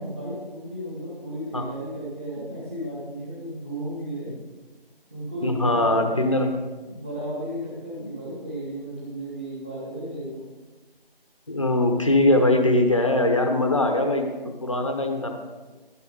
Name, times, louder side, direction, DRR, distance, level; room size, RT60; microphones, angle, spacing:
voice 1, 0.0-4.3 5.1-6.5 6.9-10.4, right 1 dB, 10° right, -9 dB, 1.4 m, -34 dB
voice 2, 5.4-6.5 11.5-15.3, left 1 dB, 30° left, 5 dB, 1.0 m, -21 dB
12.0 x 10.0 x 3.9 m, 1.3 s
figure-of-eight pair, 165°, 30 cm